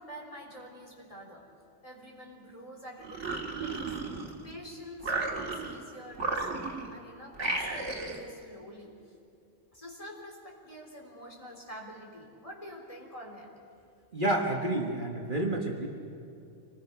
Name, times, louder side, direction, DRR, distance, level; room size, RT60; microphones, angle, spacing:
voice 1, 0.0-1.5 1.8-4.0 4.4-9.0 9.7-13.5, equal, 25° left, -1 dB, 3.5 m, -47 dB
sound 1, 3.0-4.5 5.0-5.8 6.1-7.0 7.3-8.3, right 3 dB, 65° right, 2.2 m, -34 dB
voice 2, 14.1-15.9, right 1 dB, 40° right, 0 dB, 1.6 m, -29 dB
26.5 x 19.5 x 5.9 m, 2.6 s
omnidirectional pair, 1.3 m